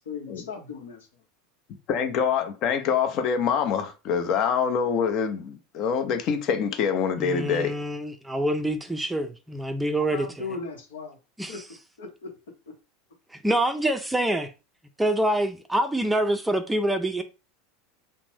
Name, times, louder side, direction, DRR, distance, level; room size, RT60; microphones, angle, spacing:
voice 1, 0.1-1.1 10.1-11.2 11.5-11.6 12.0-12.3, left 4 dB, 80° left, 0.8 m, -37 dB
voice 2, 1.9-7.7, left 6 dB, 50° left, 0.6 m, -25 dB
voice 3, 7.2-9.3 9.5-10.5 11.4-11.6 13.4-14.5 15.0-17.2, right 1 dB, 5° right, 0.4 m, -26 dB
2.5 x 2.1 x 3.3 m
hypercardioid pair, 90°, 0 cm